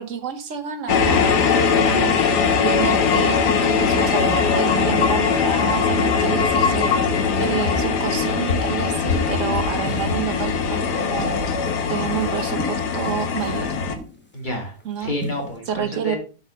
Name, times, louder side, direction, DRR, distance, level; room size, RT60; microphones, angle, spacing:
voice 1, 0.0-2.2 2.6-6.9 7.4-13.7 14.8-15.1 15.7-16.2, right 8 dB, 55° right, 9 dB, 1.4 m, -28 dB
sound 1, 0.9-14.0, left 6 dB, 90° left, 1.6 m, -20 dB
sound 2, 9.7-10.4 11.2-13.4 14.0-14.3 14.8-15.6, left 1 dB, 10° left, 1.0 m, -36 dB
voice 2, 14.3-16.2, equal, 30° left, 0 dB, 2.6 m, -29 dB
7.9 x 5.2 x 5.2 m, 0.35 s
omnidirectional pair, 1.7 m